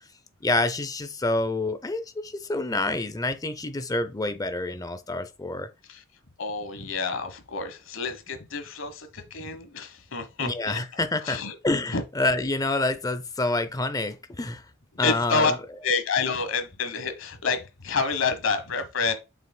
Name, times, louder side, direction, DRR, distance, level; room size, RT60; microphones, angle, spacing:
voice 1, 0.4-5.7 10.4-14.6 15.0-15.6, left 2 dB, 20° left, 0.6 m, -27 dB
voice 2, 6.4-10.8 11.2-11.5 11.9-12.0 15.0-15.5 15.8-19.1, left 4 dB, 70° left, 1.3 m, -28 dB
7.5 x 6.0 x 2.3 m
head